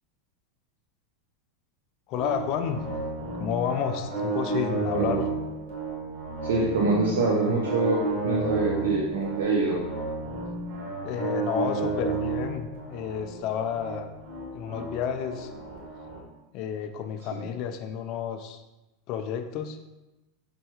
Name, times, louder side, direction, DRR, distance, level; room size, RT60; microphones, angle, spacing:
voice 1, 2.1-2.8 3.4-5.3 11.0-14.1 14.5-15.5 16.5-18.6 19.1-19.8, left 8 dB, 50° left, 6 dB, 0.4 m, -31 dB
sound 1, 2.2-16.2, right 4 dB, 70° right, 1.0 m, -32 dB
voice 2, 4.9-5.3 6.4-9.8 17.4-17.5, right 3 dB, 90° right, -2 dB, 0.5 m, -25 dB
5.4 x 2.2 x 2.9 m, 1.0 s
hypercardioid pair, 115°, 0 cm